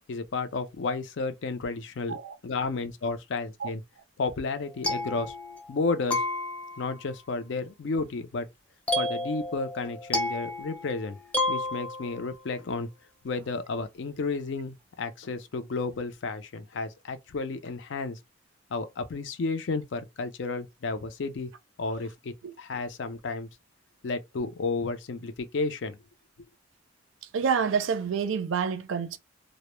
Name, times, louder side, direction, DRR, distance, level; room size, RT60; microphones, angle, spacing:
voice 1, 0.0-2.2 2.4-3.8 4.2-5.3 5.7-6.2 6.8-8.5 9.0-11.2 11.5-12.9 13.2-18.2 18.7-21.5 21.8-23.5 24.0-26.0, left 3 dB, 65° left, 0.4 m, -32 dB
sound 1, 4.6-5.8 6.1-7.0 8.9-12.3, left 2 dB, 5° left, 0.5 m, -31 dB
voice 2, 27.3-29.2, right 6 dB, 80° right, 0.4 m, -28 dB
2.1 x 2.0 x 3.0 m
head